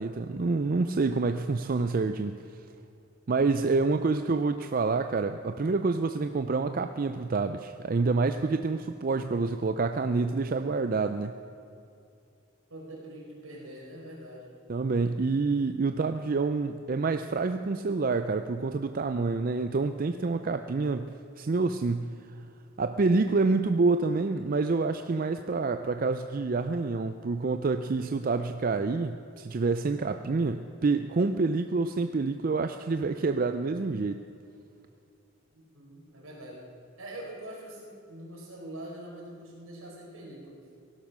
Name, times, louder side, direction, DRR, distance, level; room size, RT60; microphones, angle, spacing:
voice 1, 0.0-2.4 3.3-11.4 14.7-22.2 22.8-34.2, right 3 dB, 40° right, 8 dB, 0.4 m, -27 dB
voice 2, 12.7-14.5 35.5-36.6 37.0-40.6, right 1 dB, 75° right, -3 dB, 4.8 m, -44 dB
17.5 x 11.5 x 6.2 m, 2.5 s
head